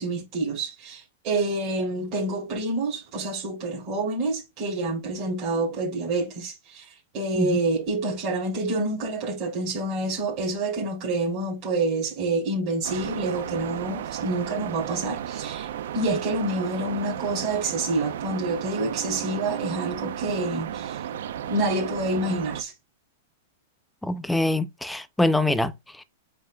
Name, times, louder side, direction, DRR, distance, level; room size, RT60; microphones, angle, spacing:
voice 1, 0.0-21.1 21.5-22.7, right 2 dB, 30° right, 3.0 m, -28 dB
sound 1, 12.8-22.6, right 10 dB, 60° right, 0.7 m, -34 dB
voice 2, 24.0-25.7 26.0-26.1, left 1 dB, ahead, 0.4 m, -24 dB
8.8 x 5.1 x 2.3 m
supercardioid pair, 175°, 0 cm